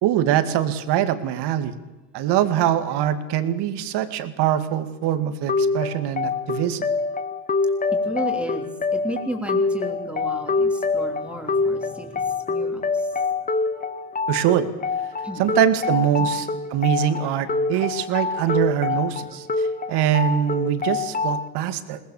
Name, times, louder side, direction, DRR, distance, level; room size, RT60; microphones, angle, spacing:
voice 1, 0.0-1.7 2.1-6.9 14.3-14.7 15.4-22.0, right 10 dB, 55° right, 10 dB, 2.2 m, -23 dB
sound 1, 5.5-21.5, left 4 dB, 20° left, 1.3 m, -25 dB
voice 2, 7.9-13.5 15.2-15.5 16.2-16.3 17.2-17.4 17.7-18.6 18.9-19.0 19.3-19.4, equal, ahead, 4 dB, 3.4 m, -34 dB
22.0 x 19.5 x 7.2 m, 1.1 s
hypercardioid pair, 85°, 47 cm